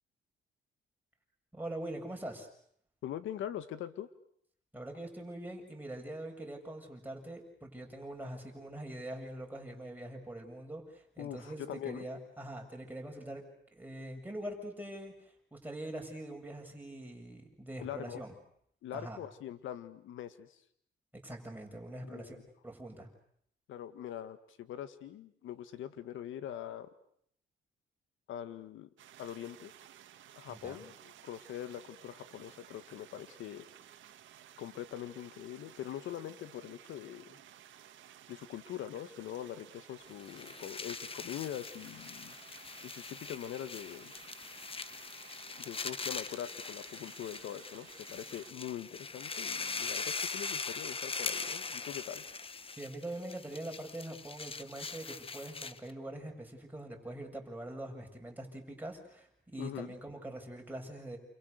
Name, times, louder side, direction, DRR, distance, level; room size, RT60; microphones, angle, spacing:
voice 1, 1.5-2.5 4.7-13.4 13.7-18.3 18.9-19.2 21.2-22.4 22.6-23.1 30.5-30.8 52.8-61.2, right 1 dB, 10° right, 1 dB, 7.3 m, -43 dB
voice 2, 3.0-4.1 11.2-12.1 17.8-18.2 18.8-20.6 22.0-22.4 23.7-26.9 28.3-28.9 29.2-29.7 30.4-33.6 34.6-37.4 38.3-42.4 42.8-44.1 45.6-52.3 59.6-59.9, left 11 dB, 80° left, 12 dB, 1.9 m, -43 dB
sound 1, 29.0-48.5, right 11 dB, 75° right, 2.3 m, -56 dB
sound 2, 40.1-55.9, left 4 dB, 30° left, 1.3 m, -41 dB
29.0 x 28.5 x 6.7 m, 0.68 s
cardioid pair, 90°, 20 cm